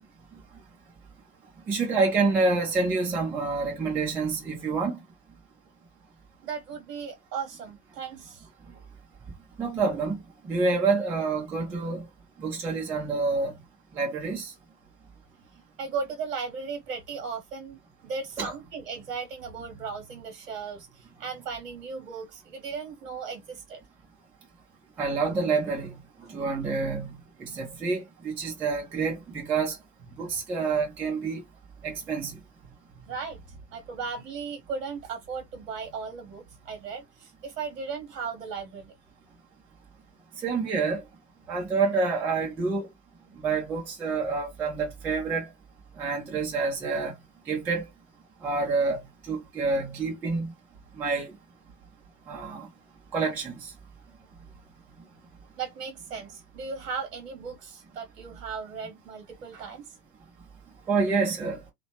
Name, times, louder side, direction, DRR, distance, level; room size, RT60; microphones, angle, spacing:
voice 1, 1.7-5.0 9.6-10.2 10.4-12.1 12.4-13.6 13.9-14.5 18.4-18.5 25.0-26.0 26.3-29.8 30.2-31.4 31.8-32.3 40.4-41.0 41.5-42.9 43.4-45.5 46.0-47.1 47.5-47.9 48.4-50.5 51.0-51.3 52.3-52.7 53.1-53.7 60.9-61.6, right 4 dB, 5° right, 0.3 m, -27 dB
voice 2, 6.4-8.5 15.8-23.8 26.2-26.3 33.1-33.4 33.7-38.9 55.6-59.8, right 5 dB, 55° right, 0.9 m, -36 dB
2.8 x 2.1 x 2.8 m
figure-of-eight pair, 90°, 48 cm